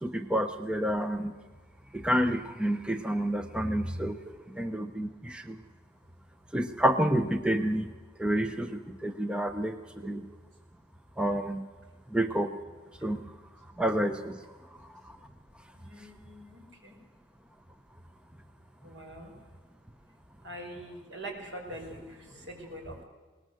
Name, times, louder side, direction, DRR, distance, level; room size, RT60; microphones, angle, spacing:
voice 1, 0.0-1.3 1.9-4.2 4.5-5.6 6.5-7.9 8.2-10.2 11.2-11.6 12.1-12.5 13.0-13.2 13.8-14.4, right 1 dB, 5° right, 8 dB, 0.8 m, -29 dB
voice 2, 15.8-17.0 18.8-19.3 20.4-23.0, right 1 dB, 75° right, 2 dB, 5.2 m, -43 dB
21.0 x 19.0 x 7.9 m, 1.4 s
head